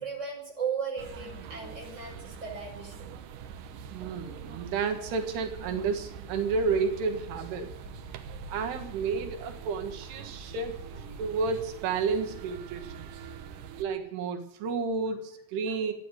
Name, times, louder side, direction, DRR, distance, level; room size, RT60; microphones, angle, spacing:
voice 1, 0.0-3.2 4.5-4.6 7.8-8.6 10.2-10.3 10.9-11.2 15.6-15.8, right 6 dB, 15° right, -1 dB, 5.7 m, -37 dB
sound 1, 1.0-13.9, right 6 dB, 70° right, 2.2 m, -44 dB
voice 2, 3.9-7.7 8.5-10.8 11.2-13.1 13.8-15.9, right 5 dB, 85° right, 4 dB, 3.6 m, -31 dB
14.0 x 9.8 x 9.6 m, 0.70 s
omnidirectional pair, 4.6 m